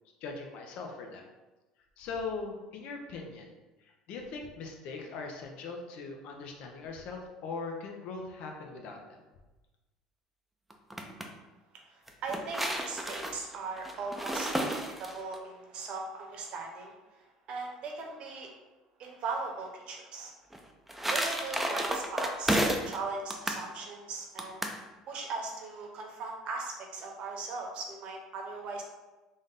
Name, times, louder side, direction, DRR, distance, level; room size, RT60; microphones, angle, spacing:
voice 1, 0.2-1.2 2.0-3.5 3.8-9.2, left 4 dB, 60° left, 2 dB, 0.7 m, -40 dB
sound 1, 10.7-11.3 12.1-15.4 20.5-23.0 23.3-23.6 24.4-24.8, right 1 dB, 5° right, 0.5 m, -32 dB
voice 2, 11.7-16.9 17.5-18.5 19.0-20.3 21.1-22.6 22.9-24.6 25.1-28.8, right 3 dB, 55° right, 1 dB, 0.9 m, -39 dB
3.6 x 2.6 x 3.6 m, 1.1 s
hypercardioid pair, 75°, 2 cm